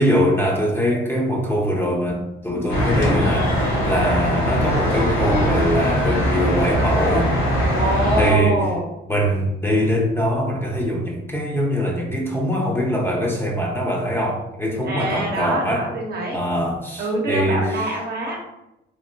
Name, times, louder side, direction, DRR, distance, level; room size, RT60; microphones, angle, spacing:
voice 1, 0.0-3.5 3.8-7.3 8.2-8.6 9.1-15.9 16.3-17.9, equal, 10° left, -2 dB, 0.7 m, -22 dB
sound 1, 2.7-8.3, equal, 90° left, 1.4 m, -21 dB
sound 2, 2.9-3.6 4.6-5.2 5.8-5.9 7.2-8.0, equal, 75° left, 0.8 m, -32 dB
voice 2, 7.7-8.9 14.8-16.4 17.0-18.4, right 1 dB, 55° right, -1 dB, 0.9 m, -25 dB
3.0 x 2.8 x 2.6 m, 0.90 s
cardioid pair, 90°, 20 cm